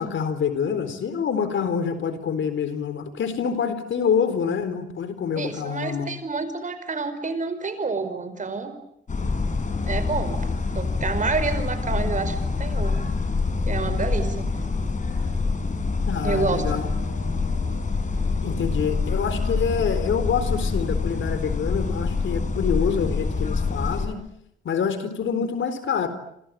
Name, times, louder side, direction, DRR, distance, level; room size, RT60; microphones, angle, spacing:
voice 1, 0.0-6.1 16.1-16.9 18.4-24.2 24.6-26.1, left 7 dB, 85° left, 11 dB, 4.1 m, -26 dB
voice 2, 5.3-8.7 9.8-10.4 10.7-13.0 13.6-14.5 16.2-16.8, right 4 dB, 40° right, 10 dB, 5.2 m, -28 dB
sound 1, 9.1-24.1, left 4 dB, 40° left, 5.8 m, -26 dB
29.5 x 26.0 x 7.6 m, 0.76 s
wide cardioid pair, 115°, 19 cm